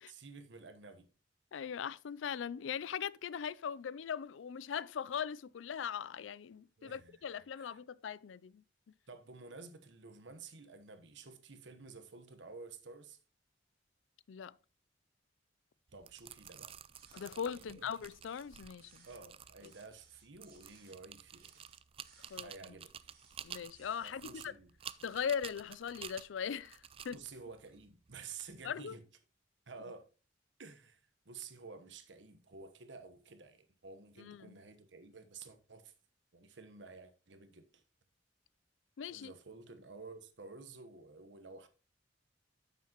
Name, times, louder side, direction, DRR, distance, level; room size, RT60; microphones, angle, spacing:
voice 1, 0.1-1.1 6.8-7.7 9.1-13.2 15.9-16.7 17.5-17.9 19.0-21.5 22.4-22.9 24.0-24.7 27.1-29.0 29.7-30.1 30.6-35.9 36.3-37.8 39.1-41.7, right 4 dB, 70° right, 1.1 m, -52 dB
voice 2, 1.5-8.6 14.3-14.5 17.1-19.1 19.6-19.7 22.3-22.5 23.4-24.5 25.0-26.8 27.0-27.2 28.6-29.0 34.2-34.5 39.0-39.3, left 7 dB, 85° left, 0.4 m, -40 dB
sound 1, 15.9-28.7, right 8 dB, 30° right, 0.4 m, -52 dB
sound 2, 16.9-17.3 17.8-19.2 19.6-21.0 21.3-22.4 23.0-24.3 24.8-25.2, right 5 dB, 50° right, 2.7 m, -65 dB
9.5 x 7.4 x 3.0 m
head